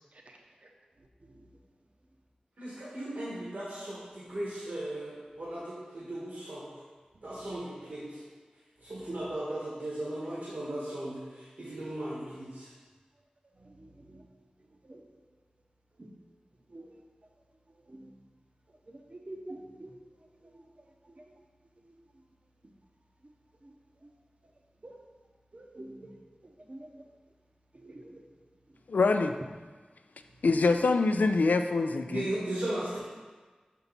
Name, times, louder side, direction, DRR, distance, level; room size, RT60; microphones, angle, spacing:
voice 1, 2.6-6.6 7.2-8.2 8.8-12.7 32.1-33.0, right 1 dB, 80° right, -8 dB, 1.6 m, -37 dB
voice 2, 13.6-14.3 14.8-15.0 16.0-16.1 16.7-17.0 17.9-18.1 18.9-19.9 20.4-20.7 21.1-21.2 21.9-22.0 23.6-23.7 24.0-24.1 24.8-24.9 25.5-26.1 26.7-26.9 27.7-28.2 30.7-30.9, right 1 dB, 50° right, 1 dB, 0.8 m, -47 dB
voice 3, 28.9-29.3 30.4-32.3, left 3 dB, 90° left, 7 dB, 0.3 m, -25 dB
5.8 x 5.4 x 4.1 m, 1.4 s
wide cardioid pair, 45°, 3 cm